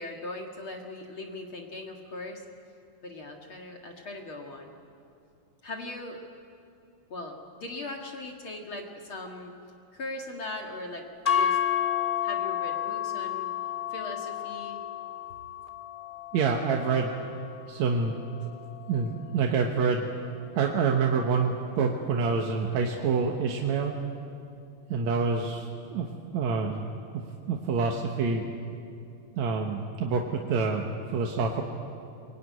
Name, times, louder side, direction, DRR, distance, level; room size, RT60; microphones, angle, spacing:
voice 1, 0.0-2.5 3.0-4.7 5.6-6.2 7.1-9.5 9.9-11.6 12.2-13.5 13.9-14.8, left 2 dB, 45° left, 2 dB, 2.1 m, -39 dB
sound 1, 11.2-19.5, left 10 dB, 30° left, 0.9 m, -32 dB
voice 2, 16.3-17.1 17.7-18.1 18.9-20.1 20.6-24.0 24.9-26.1 26.3-26.9 27.5-28.4 29.4-31.6, right 5 dB, 65° right, 1 dB, 2.3 m, -27 dB
23.5 x 21.5 x 9.5 m, 2.6 s
omnidirectional pair, 4.0 m